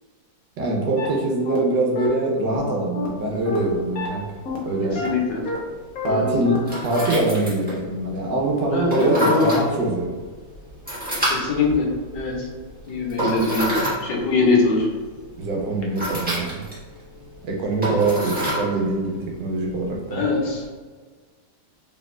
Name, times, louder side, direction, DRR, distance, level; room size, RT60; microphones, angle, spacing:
voice 1, 0.6-4.2 4.7-5.0 6.0-10.1 15.4-16.5 17.4-20.2, right 2 dB, 75° right, -1 dB, 1.4 m, -23 dB
sound 1, 1.0-1.1 1.5-1.6 2.0-2.1 2.5-2.6 3.0-3.1 3.5-3.6 4.0-4.1 4.5-4.6 5.0-5.1 5.5-5.6 6.0-6.1 6.5-6.6 7.0-7.1, left 2 dB, 55° left, 1.2 m, -29 dB
sound 2, 3.1-20.6, equal, 5° right, 1.1 m, -31 dB
voice 2, 5.0-5.4 6.0-6.3 8.7-9.5 11.3-12.5 12.9-13.7 14.0-14.9 20.1-20.6, left 3 dB, 75° left, -2 dB, 1.5 m, -22 dB
4.5 x 3.6 x 2.3 m, 1.5 s
omnidirectional pair, 2.0 m